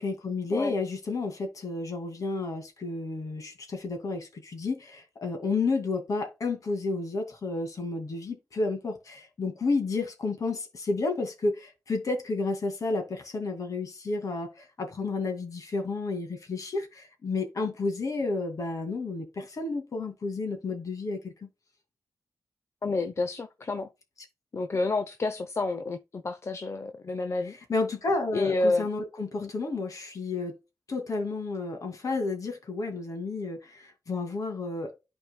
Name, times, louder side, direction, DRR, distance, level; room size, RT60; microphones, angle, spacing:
voice 1, 0.0-21.3 27.7-30.5 30.9-34.9, left 3 dB, 60° left, 2.5 m, -31 dB
voice 2, 22.8-23.9 24.5-27.6 28.3-28.9 29.4-29.5, left 3 dB, 45° left, 0.7 m, -29 dB
11.5 x 4.5 x 2.3 m
cardioid pair, 70°, 6 cm